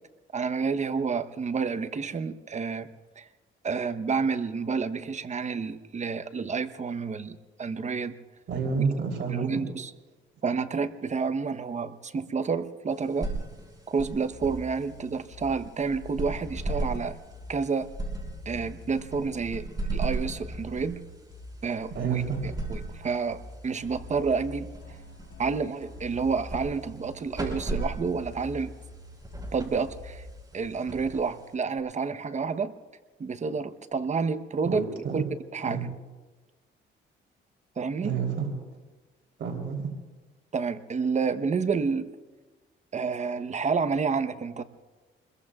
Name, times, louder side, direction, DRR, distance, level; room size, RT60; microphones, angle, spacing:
voice 1, 0.3-2.9 3.2-3.3 3.6-8.2 9.3-9.9 10.4-13.3 13.9-17.2 17.5-17.9 18.4-21.0 21.6-25.0 25.4-28.7 29.5-30.2 30.5-32.8 33.2-34.9 35.1-35.2 35.5-35.9 37.8-38.2 40.5-42.1 42.9-44.6, right 5 dB, 35° right, 10 dB, 1.0 m, -29 dB
voice 2, 8.5-9.6 21.9-22.5 34.6-35.2 35.6-35.8 38.0-38.5 39.4-39.9, right 5 dB, 70° right, 1 dB, 3.7 m, -29 dB
sound 1, 12.9-31.8, right 2 dB, 20° right, 4.9 m, -38 dB
sound 2, 14.3-30.3, left 2 dB, 85° left, 6.1 m, -45 dB
27.0 x 22.0 x 2.5 m, 1.2 s
cardioid pair, 90°, 20 cm